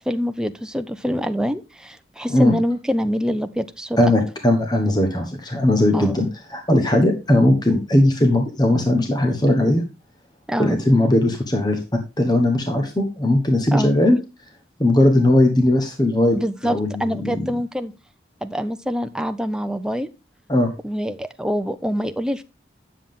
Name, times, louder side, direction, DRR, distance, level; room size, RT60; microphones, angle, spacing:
voice 1, 0.1-4.0 5.9-6.2 10.5-10.8 13.7-14.0 16.3-17.9 18.4-20.1 20.8-22.4, equal, 5° right, 9 dB, 0.5 m, -25 dB
voice 2, 4.0-9.8 10.6-14.2 14.8-16.4 16.6-17.5 20.5-20.7, left 1 dB, 20° left, 5 dB, 1.1 m, -18 dB
9.8 x 7.2 x 3.5 m, 0.27 s
head